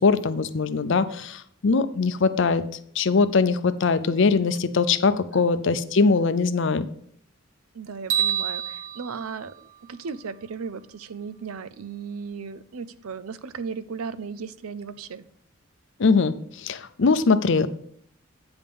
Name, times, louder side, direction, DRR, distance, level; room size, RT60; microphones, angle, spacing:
voice 1, 0.0-2.6 3.0-6.9 16.0-17.7, left 4 dB, 60° left, 13 dB, 0.5 m, -21 dB
voice 2, 7.7-15.3, right 5 dB, 90° right, 14 dB, 0.5 m, -36 dB
sound 1, 8.1-10.4, right 10 dB, 60° right, 1.6 m, -29 dB
8.9 x 3.6 x 6.7 m, 0.65 s
head